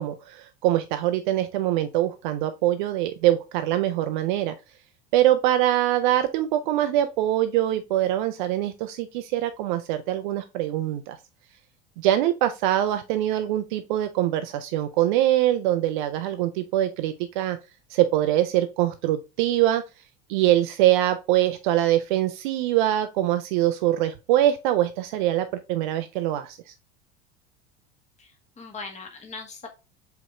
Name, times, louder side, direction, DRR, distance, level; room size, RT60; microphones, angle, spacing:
voice 1, 0.0-4.5 5.1-11.2 12.0-17.6 17.9-19.8 20.3-26.6, right 13 dB, 50° right, 0.5 m, -23 dB
voice 2, 28.2-29.7, left 4 dB, 20° left, 1.2 m, -40 dB
4.8 x 3.0 x 2.9 m
figure-of-eight pair, 75°, 32 cm